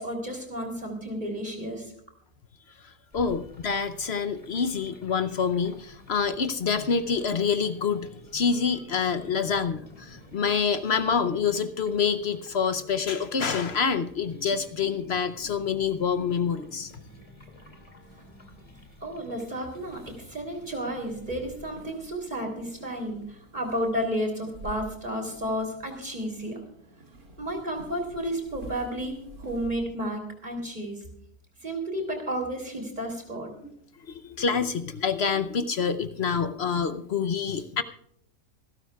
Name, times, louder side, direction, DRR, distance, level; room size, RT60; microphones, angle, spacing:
voice 1, 0.0-1.9 19.0-26.6 27.4-31.0 31.6-33.5, equal, 25° right, 3 dB, 3.4 m, -32 dB
voice 2, 2.8-16.9 33.6-33.7 34.1-37.8, left 6 dB, 55° left, 10 dB, 0.8 m, -27 dB
sound 1, 3.1-21.8, left 1 dB, 20° left, 2.3 m, -51 dB
sound 2, 19.5-29.7, right 1 dB, 60° right, 3.2 m, -49 dB
27.0 x 12.5 x 2.3 m, 0.70 s
omnidirectional pair, 1.7 m